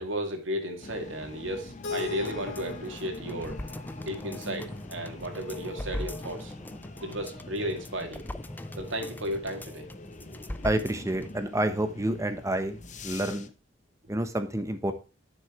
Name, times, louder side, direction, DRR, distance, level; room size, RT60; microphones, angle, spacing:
voice 1, 0.0-3.6 4.0-6.5 7.0-8.2 8.8-9.9, equal, 75° right, 4 dB, 2.2 m, -34 dB
sound 1, 0.8-13.5, left 2 dB, 40° left, 0.8 m, -45 dB
Keyboard (musical), 1.8-4.8, left 6 dB, 75° left, 3.0 m, -40 dB
sound 2, 2.0-11.4 11.7-11.8, left 1 dB, 10° left, 0.5 m, -41 dB
voice 2, 10.6-13.5 14.1-14.9, right 1 dB, 15° right, 9 dB, 1.0 m, -29 dB
11.0 x 6.4 x 3.1 m, 0.32 s
head